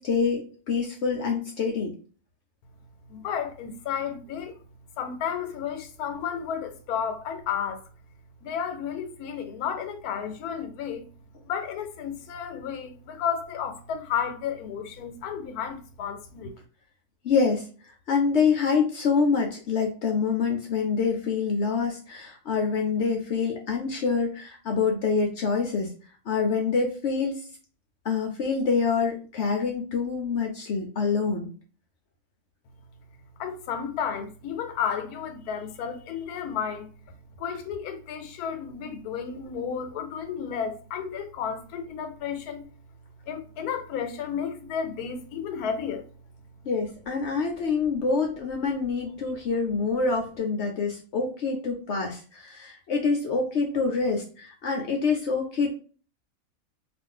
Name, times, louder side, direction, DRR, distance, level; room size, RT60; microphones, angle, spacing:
voice 1, 0.0-1.9 17.2-17.7 18.1-25.9 26.3-27.4 28.0-31.5 46.6-55.7, left 5 dB, 65° left, 0.7 m, -26 dB
voice 2, 3.1-4.6 5.0-7.8 8.4-11.1 11.5-16.5 33.4-42.6 43.3-46.1, left 7 dB, 85° left, 1.1 m, -32 dB
2.5 x 2.4 x 3.7 m
omnidirectional pair, 1.6 m